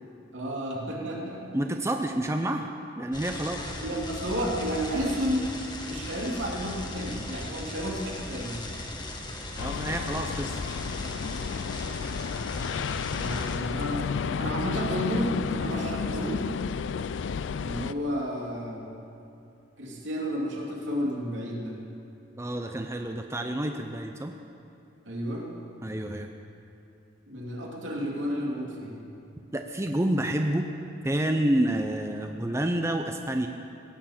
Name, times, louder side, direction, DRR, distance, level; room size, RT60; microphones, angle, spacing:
voice 1, 0.3-1.5 3.7-5.5 5.8-8.6 13.1-16.5 17.6-18.9 19.8-21.8 25.1-25.5 27.3-29.0, equal, 75° right, -2 dB, 2.7 m, -31 dB
voice 2, 1.5-2.7 3.0-3.6 9.6-10.6 22.4-24.3 25.8-26.3 29.5-30.7 31.0-33.5, right 1 dB, 15° right, 4 dB, 0.5 m, -28 dB
sound 1, 3.1-13.6, left 1 dB, 25° left, 1.2 m, -38 dB
sound 2, 9.6-17.9, left 6 dB, 70° left, 0.4 m, -32 dB
17.0 x 7.2 x 8.7 m, 2.6 s
head